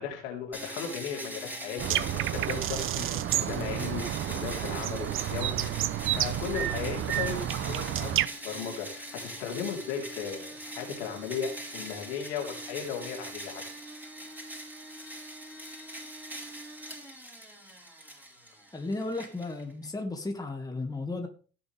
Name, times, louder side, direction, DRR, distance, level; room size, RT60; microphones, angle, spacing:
voice 1, 0.0-13.6, left 7 dB, 70° left, 0 dB, 3.7 m, -36 dB
sound 1, 0.5-19.9, right 1 dB, 5° right, 4.4 m, -42 dB
sound 2, 1.8-8.3, right 12 dB, 35° right, 0.7 m, -30 dB
voice 2, 18.7-21.3, left 2 dB, 10° left, 4 dB, 2.0 m, -34 dB
16.5 x 7.1 x 3.5 m, 0.38 s
figure-of-eight pair, 65°, 35 cm